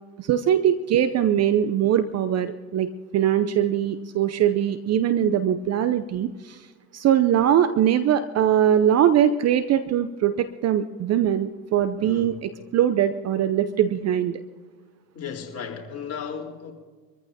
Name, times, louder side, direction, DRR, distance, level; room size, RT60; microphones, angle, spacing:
voice 1, 0.2-6.6 6.9-12.3 12.7-14.4, right 10 dB, 35° right, 0.7 m, -21 dB
voice 2, 12.0-12.3 15.1-16.7, left 6 dB, 30° left, 4.1 m, -35 dB
25.0 x 14.5 x 2.9 m
hypercardioid pair, 75°, 49 cm